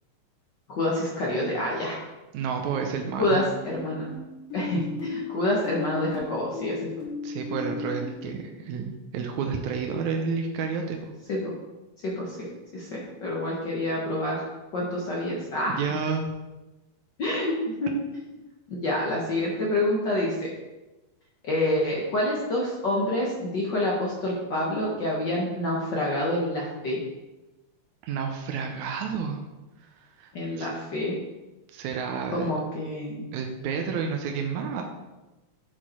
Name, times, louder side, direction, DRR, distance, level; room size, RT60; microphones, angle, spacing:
voice 1, 0.7-2.0 3.1-4.1 4.5-6.8 11.3-11.5 12.0-12.5 12.7-14.4 14.7-15.8 17.2-17.5 17.8-18.2 18.7-20.5 21.4-27.0 30.3-31.2 32.3-33.3, left 1 dB, 70° left, -4 dB, 1.0 m, -27 dB
voice 2, 2.3-3.4 7.2-11.1 15.7-16.3 28.0-29.4 30.0-30.3 30.6-30.7 31.7-32.5 33.3-34.8, right 5 dB, 75° right, 3 dB, 1.9 m, -30 dB
sound 1, 3.3-8.4, left 4 dB, 90° left, 3.2 m, -36 dB
8.0 x 4.9 x 4.3 m, 1.1 s
omnidirectional pair, 3.7 m